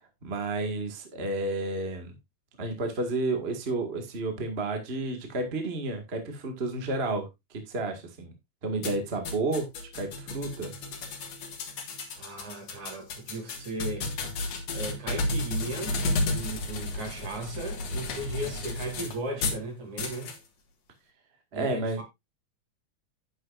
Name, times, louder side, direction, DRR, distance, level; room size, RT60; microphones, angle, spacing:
voice 1, 0.2-2.1 2.6-8.3 8.6-9.7 9.9-10.7 21.5-22.0, right 2 dB, 25° right, 1.6 m, -31 dB
sound 1, 8.8-19.6 20.0-20.4, left 2 dB, 60° left, 2.7 m, -33 dB
voice 2, 12.2-14.1 14.7-16.0 16.3-20.3 21.5-22.0, right 2 dB, 65° right, 4.2 m, -36 dB
10.5 x 9.2 x 2.5 m
omnidirectional pair, 3.5 m